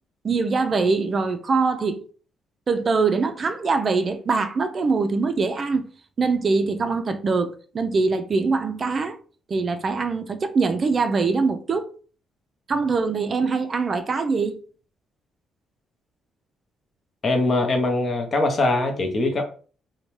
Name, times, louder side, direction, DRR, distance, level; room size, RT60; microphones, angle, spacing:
voice 1, 0.2-2.0 2.7-5.9 6.2-9.2 9.5-11.9 12.7-14.6, right 4 dB, 40° right, 0.3 m, -23 dB
voice 2, 17.2-19.4, left 2 dB, 40° left, 0.7 m, -22 dB
2.7 x 2.1 x 3.0 m
cardioid pair, 90°, 0 cm